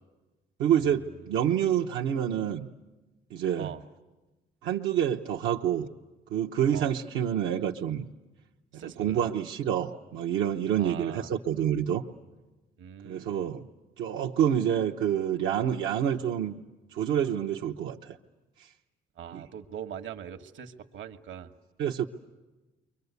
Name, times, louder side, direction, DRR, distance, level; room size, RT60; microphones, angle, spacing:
voice 1, 0.6-2.7 3.3-3.7 4.6-5.9 6.3-8.1 9.0-12.0 13.0-13.7 14.0-16.6 16.9-18.2 19.3-19.4 21.8-22.0, right 9 dB, 90° right, -1 dB, 1.0 m, -27 dB
voice 2, 8.7-9.3 10.8-11.3 12.8-13.5 19.2-21.5, right 9 dB, 70° right, 8 dB, 1.4 m, -42 dB
29.5 x 23.5 x 8.2 m, 1.1 s
cardioid pair, 90°, 20 cm